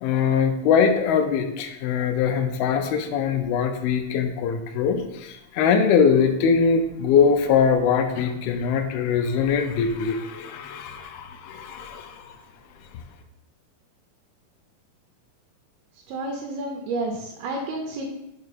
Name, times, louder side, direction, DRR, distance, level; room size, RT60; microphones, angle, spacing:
voice 1, 0.0-12.3, left 6 dB, 80° left, 5 dB, 2.5 m, -22 dB
voice 2, 16.1-18.0, right 2 dB, 80° right, 1 dB, 2.7 m, -30 dB
6.7 x 4.5 x 4.2 m, 0.87 s
omnidirectional pair, 4.5 m